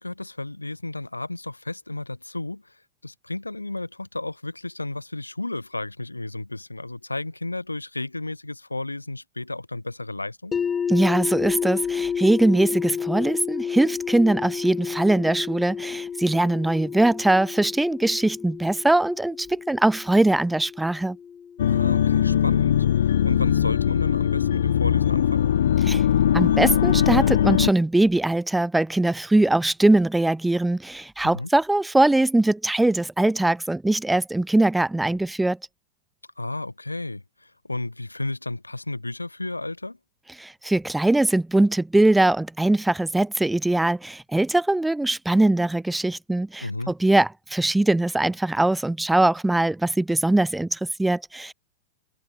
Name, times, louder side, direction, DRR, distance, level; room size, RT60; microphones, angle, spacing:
voice 1, 0.0-2.7 3.0-10.6 21.7-25.5 31.2-31.5 36.4-40.0 46.6-46.9, left 2 dB, 85° left, 4.8 m, -33 dB
sound 1, 10.5-22.4, left 7 dB, 20° left, 2.6 m, -30 dB
voice 2, 10.9-21.2 25.8-26.0 26.3-35.6 40.4-51.5, right 2 dB, 5° right, 0.6 m, -21 dB
sound 2, 21.6-27.7, left 10 dB, 65° left, 1.4 m, -20 dB
figure-of-eight pair, 95°, 0 cm